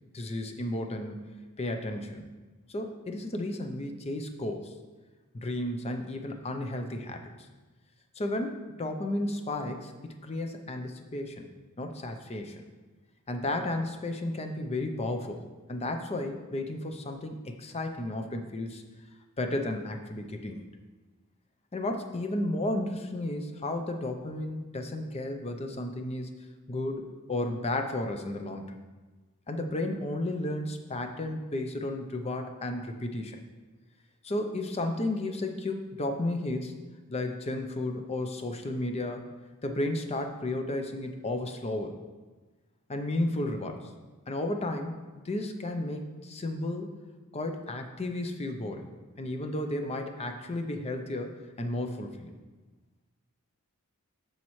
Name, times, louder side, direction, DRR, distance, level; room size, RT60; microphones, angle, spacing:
voice 1, 0.1-1.3 1.6-2.2 2.7-4.7 5.3-7.2 8.2-9.9 10.2-11.5 11.8-12.6 13.3-15.4 15.7-18.8 19.4-20.6 21.7-26.3 26.7-28.6 29.5-33.4 34.2-36.7 37.1-39.2 39.6-42.0 42.9-43.8 44.3-45.0 45.2-47.0 47.3-48.8 49.2-52.4, left 1 dB, 30° left, 5 dB, 0.6 m, -33 dB
12.0 x 4.2 x 3.1 m, 1.2 s
head